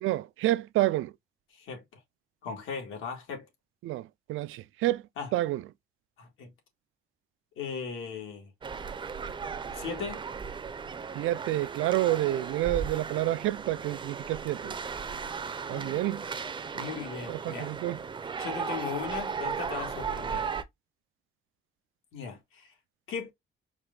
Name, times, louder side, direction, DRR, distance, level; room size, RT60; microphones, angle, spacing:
voice 1, 0.0-1.1 3.8-5.0 5.3-5.6 11.1-14.7 15.7-16.2 17.3-18.0, right 15 dB, 80° right, 0.4 m, -29 dB
voice 2, 1.5-1.8 2.4-3.5 5.2-5.3 6.2-6.5 7.6-8.5 9.7-10.2 15.7-16.0 16.7-17.7 18.2-20.5 22.1-22.7 23.1-23.3, left 6 dB, 80° left, 1.9 m, -38 dB
sound 1, 8.6-20.6, right 6 dB, 25° right, 0.5 m, -36 dB
4.6 x 2.6 x 3.7 m
cardioid pair, 155°, 21 cm